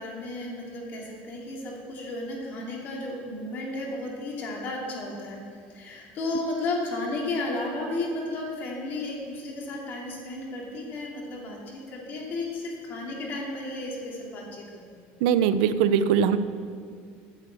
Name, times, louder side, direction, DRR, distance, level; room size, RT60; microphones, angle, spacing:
voice 1, 0.0-5.4 5.7-15.1, left 2 dB, 40° left, -2 dB, 2.7 m, -33 dB
voice 2, 15.2-16.4, right 8 dB, 85° right, 12 dB, 0.6 m, -21 dB
9.3 x 6.9 x 8.3 m, 2.1 s
cardioid pair, 150°, 5 cm